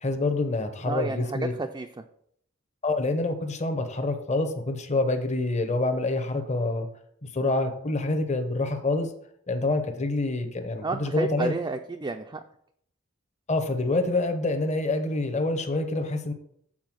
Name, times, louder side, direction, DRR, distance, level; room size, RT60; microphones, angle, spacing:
voice 1, 0.0-1.5 2.8-6.9 7.3-9.1 9.5-11.5 13.5-16.3, left 2 dB, 35° left, 7 dB, 0.9 m, -26 dB
voice 2, 0.8-2.0 10.8-12.4, right 3 dB, 20° right, 4 dB, 0.4 m, -31 dB
7.4 x 4.5 x 6.1 m, 0.68 s
head